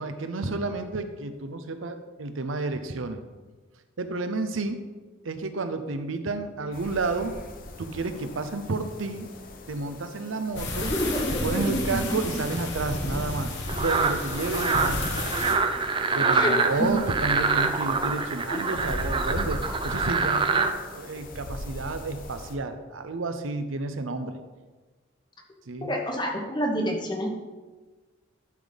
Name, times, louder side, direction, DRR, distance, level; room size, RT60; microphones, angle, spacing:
voice 1, 0.0-3.2 4.0-4.8 5.2-7.3 7.8-9.3 9.7-10.9 11.4-15.1 16.1-24.4 25.7-25.9, right 3 dB, 85° right, 9 dB, 0.7 m, -31 dB
sound 1, 6.7-22.5, left 1 dB, 45° left, 0.8 m, -40 dB
sound 2, 10.5-15.6, left 2 dB, 65° left, 1.4 m, -32 dB
voice 2, 10.8-12.4 16.2-17.0 18.5-18.6 25.8-27.3, equal, 20° left, 2 dB, 1.1 m, -28 dB
sound 3, 13.7-20.7, right 4 dB, 25° right, 0.4 m, -26 dB
11.5 x 4.1 x 5.1 m, 1.3 s
head